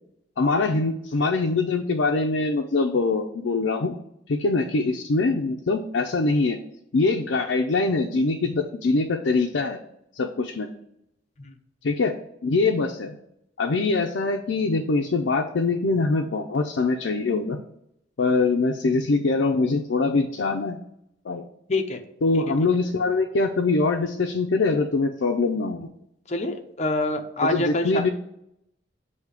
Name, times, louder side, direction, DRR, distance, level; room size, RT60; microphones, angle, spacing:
voice 1, 0.4-3.9 4.3-6.6 6.9-9.8 10.2-10.7 11.8-12.1 12.4-13.2 13.6-17.6 18.2-20.8 21.2-21.5 22.2-25.9 27.4-28.1, left 3 dB, 90° left, 2 dB, 0.5 m, -23 dB
voice 2, 21.7-22.0 22.3-22.4 26.3-28.1, left 2 dB, 40° left, 5 dB, 0.7 m, -26 dB
8.1 x 2.8 x 4.8 m, 0.78 s
head